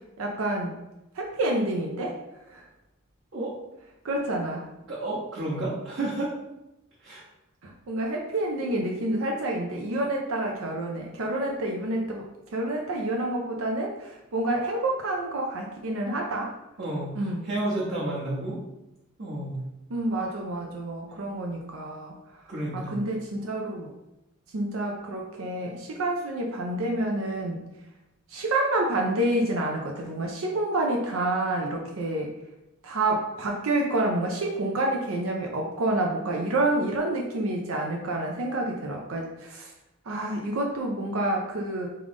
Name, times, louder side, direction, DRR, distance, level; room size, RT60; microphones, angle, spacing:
voice 1, 0.2-0.8 1.2-2.2 2.5-2.6 4.0-4.7 7.6-12.2 12.5-16.5 17.1-17.5 19.9-22.2 22.7-23.9 24.5-27.6 28.3-32.3 32.8-39.7 40.1-41.9, right 1 dB, 80° right, 0 dB, 0.5 m, -28 dB
voice 2, 4.9-6.3 7.0-7.2 16.8-18.6 19.2-19.6 22.5-23.0, right 1 dB, 55° right, -9 dB, 1.1 m, -31 dB
3.7 x 3.3 x 3.5 m, 0.92 s
head